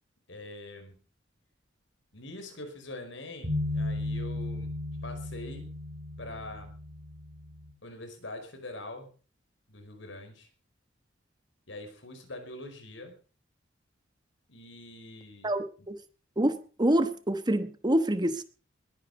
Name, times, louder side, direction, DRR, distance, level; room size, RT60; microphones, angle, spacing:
voice 1, 0.3-1.0 2.1-4.7 5.0-5.7 6.2-6.7 7.8-9.1 9.7-10.5 11.7-13.2 14.5-15.9, left 2 dB, 75° left, 5.1 m, -44 dB
sound 1, 3.4-7.7, left 1 dB, 70° right, 3.8 m, -35 dB
voice 2, 15.4-16.0 16.4-18.4, right 1 dB, 20° right, 1.2 m, -26 dB
21.0 x 9.8 x 5.4 m
head